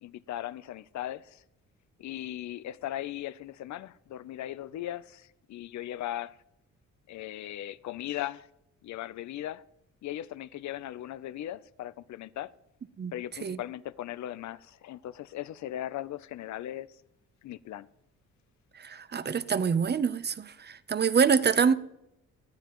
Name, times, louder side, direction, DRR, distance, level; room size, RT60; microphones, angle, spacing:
voice 1, 0.0-1.4 2.0-6.4 7.1-8.5 8.8-9.6 10.0-12.5 13.1-16.9 17.4-17.9, left 13 dB, 70° left, 0.7 m, -38 dB
voice 2, 18.8-21.7, right 6 dB, 35° right, 0.8 m, -25 dB
19.5 x 13.0 x 3.1 m
cardioid pair, 90°, 30 cm